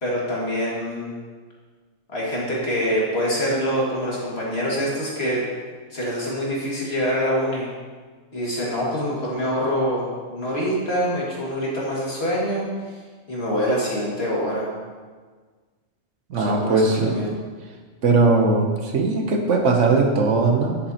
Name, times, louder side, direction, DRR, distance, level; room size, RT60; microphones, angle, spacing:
voice 1, 0.0-1.1 2.1-5.4 5.9-7.7 8.3-13.0 13.3-14.7 16.3-17.4, equal, 50° left, -5 dB, 2.4 m, -25 dB
voice 2, 16.3-17.2 18.0-20.8, right 3 dB, 65° right, 3 dB, 1.2 m, -19 dB
9.8 x 8.2 x 2.9 m, 1.5 s
omnidirectional pair, 1.4 m